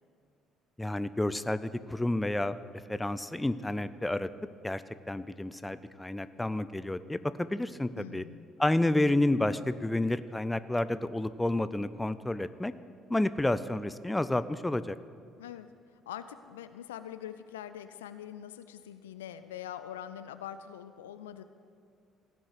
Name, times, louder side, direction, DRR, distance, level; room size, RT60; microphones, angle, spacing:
voice 1, 0.8-2.6 2.9-4.3 4.6-4.8 5.1-8.2 8.6-12.7 13.1-15.0, left 1 dB, 10° left, 14 dB, 0.5 m, -30 dB
voice 2, 8.0-8.5 15.4-15.7 16.1-21.4, left 10 dB, 75° left, 11 dB, 0.4 m, -43 dB
15.5 x 6.0 x 6.7 m, 2.3 s
figure-of-eight pair, 50°, 0 cm